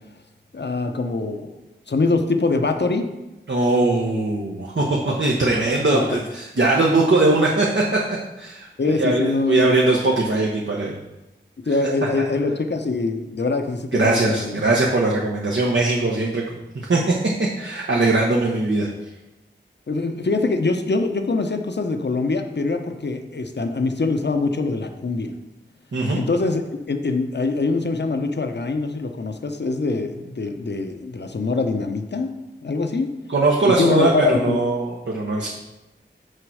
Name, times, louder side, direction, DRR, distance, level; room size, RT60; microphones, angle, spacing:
voice 1, 0.5-1.6 1.9-3.1 5.9-6.2 8.8-9.7 11.6-14.6 19.9-25.3 26.2-32.3 32.6-33.1 33.7-34.6, left 3 dB, 65° left, 6 dB, 0.8 m, -23 dB
voice 2, 3.5-8.0 8.4-11.0 11.7-11.8 13.9-16.4 16.7-17.1 17.4-18.9 25.9-26.2 33.3-35.5, right 2 dB, 75° right, -2 dB, 1.0 m, -20 dB
6.6 x 4.5 x 6.2 m, 0.99 s
wide cardioid pair, 55°, 19 cm